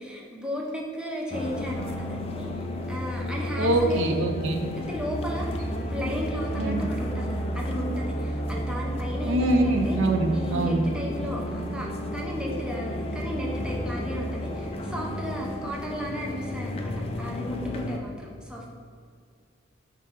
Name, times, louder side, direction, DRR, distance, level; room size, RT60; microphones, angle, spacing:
voice 1, 0.0-4.2 4.8-10.0 10.3-18.7, equal, 5° right, -2 dB, 0.7 m, -35 dB
sound 1, 1.3-18.0, equal, 30° left, 0.4 m, -32 dB
voice 2, 3.6-4.6 6.6-6.8 9.2-10.9, right 1 dB, 75° right, 5 dB, 0.6 m, -24 dB
5.4 x 5.2 x 3.7 m, 2.2 s
head